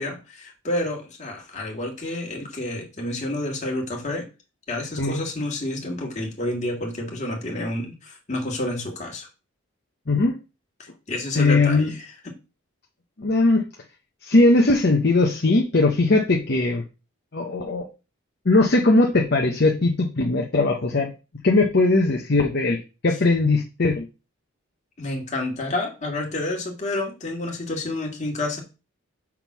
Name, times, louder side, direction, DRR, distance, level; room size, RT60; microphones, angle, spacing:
voice 1, 0.0-4.3 4.7-9.3 10.8-12.1 25.0-28.6, left 1 dB, 35° left, 0 dB, 1.9 m, -29 dB
voice 2, 10.1-10.4 11.3-11.9 13.2-13.7 14.2-16.8 17.3-17.9 18.4-21.1 21.4-24.1, left 2 dB, 50° left, 1 dB, 0.8 m, -19 dB
5.9 x 3.7 x 6.0 m, 0.31 s
head